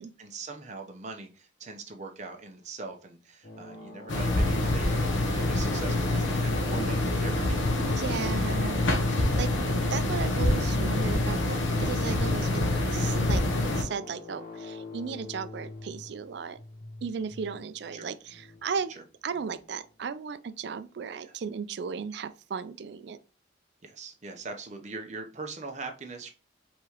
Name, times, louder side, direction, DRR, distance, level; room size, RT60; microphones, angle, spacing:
voice 1, 0.2-8.9 17.9-18.1 18.9-19.0 21.2-21.3 23.8-26.3, right 3 dB, 35° right, 0.8 m, -42 dB
sound 1, 3.4-20.0, left 2 dB, 45° left, 0.9 m, -46 dB
sound 2, 4.1-13.8, left 2 dB, 75° left, 0.9 m, -26 dB
voice 2, 8.0-8.9 9.4-9.5 9.9-13.4 13.8-16.6 17.0-18.9 19.2-23.2, right 6 dB, 55° right, 0.4 m, -35 dB
4.9 x 3.6 x 2.9 m
head